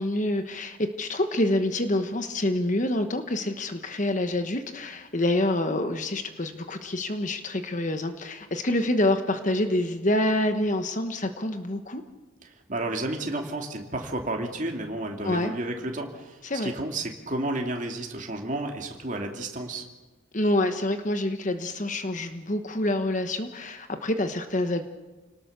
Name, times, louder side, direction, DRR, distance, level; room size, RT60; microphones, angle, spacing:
voice 1, 0.0-12.0 15.2-15.5 16.4-16.7 20.3-24.8, left 1 dB, 40° left, 8 dB, 1.2 m, -27 dB
voice 2, 12.4-19.8, right 2 dB, 40° right, 2 dB, 2.6 m, -32 dB
29.0 x 19.0 x 6.8 m, 1.2 s
head